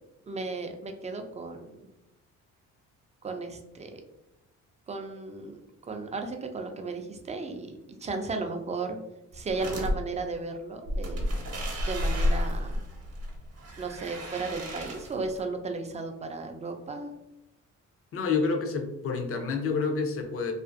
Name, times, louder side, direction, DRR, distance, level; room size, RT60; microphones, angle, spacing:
voice 1, 0.3-1.9 3.2-4.0 4.9-5.6 5.9-9.0 9.3-11.4 11.9-12.8 13.8-17.1, right 3 dB, 25° right, 5 dB, 0.3 m, -35 dB
sound 1, 9.3-9.9 10.9-15.4, left 1 dB, 55° right, 0.8 m, -31 dB
voice 2, 18.1-20.5, left 4 dB, 50° left, 4 dB, 0.5 m, -28 dB
2.5 x 2.4 x 2.4 m, 0.90 s
cardioid pair, 90°, 30 cm